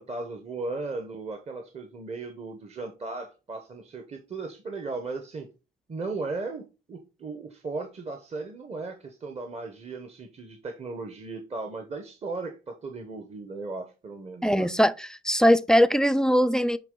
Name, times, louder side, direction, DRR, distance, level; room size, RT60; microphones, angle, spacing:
voice 1, 0.0-5.5 5.9-6.6 6.9-14.7, right 3 dB, 30° right, 1.0 m, -36 dB
voice 2, 14.4-16.8, equal, 5° left, 0.4 m, -21 dB
8.2 x 3.3 x 3.8 m
cardioid pair, 90°, 20 cm